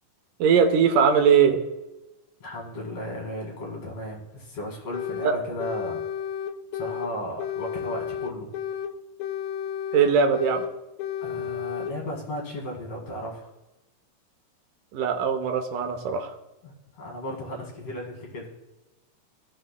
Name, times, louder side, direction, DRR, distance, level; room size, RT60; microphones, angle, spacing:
voice 1, 0.4-1.6 5.2-5.3 9.9-10.6 14.9-16.3, right 6 dB, 80° right, 4 dB, 2.5 m, -20 dB
voice 2, 2.4-6.0 6.7-8.5 11.2-13.5 16.6-18.5, equal, 55° left, -2 dB, 2.9 m, -35 dB
sound 1, 4.9-5.3 5.6-7.1 7.4-8.9 9.2-10.7 11.0-11.9, left 9 dB, 85° left, 1.5 m, -32 dB
16.0 x 6.3 x 2.2 m, 1.0 s
omnidirectional pair, 3.7 m